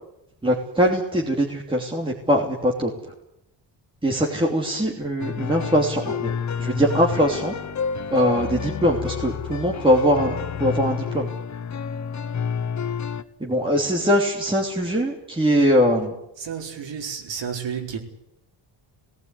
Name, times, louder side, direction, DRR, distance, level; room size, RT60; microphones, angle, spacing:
voice 1, 0.4-2.9 4.0-6.3 6.6-7.5 8.1-11.3 13.4-16.1, equal, 10° right, -2 dB, 3.0 m, -22 dB
sound 1, 5.2-13.2, left 6 dB, 40° left, 1.1 m, -29 dB
voice 2, 16.4-18.0, right 7 dB, 70° right, 3 dB, 4.3 m, -31 dB
19.5 x 18.5 x 9.7 m, 0.83 s
wide cardioid pair, 160°, 46 cm